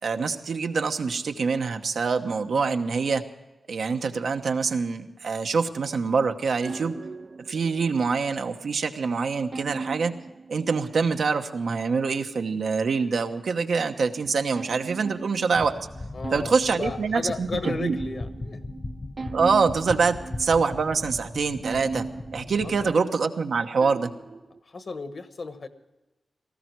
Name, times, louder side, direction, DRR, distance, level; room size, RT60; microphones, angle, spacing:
voice 1, 0.0-3.2 3.7-7.0 7.5-10.1 10.5-15.7 16.3-18.0 19.3-22.1 22.3-24.1, right 5 dB, 75° right, 6 dB, 1.0 m, -25 dB
sound 1, 6.6-8.4 9.5-11.5 14.2-21.3 21.6-24.6, right 4 dB, 40° right, 0.4 m, -38 dB
sound 2, 15.5-23.0, left 2 dB, 30° left, 0.9 m, -38 dB
voice 2, 16.1-18.6 22.6-22.9 24.6-25.7, left 3 dB, 50° left, 9 dB, 1.2 m, -34 dB
18.0 x 15.0 x 4.6 m, 1.1 s
wide cardioid pair, 130°, 0 cm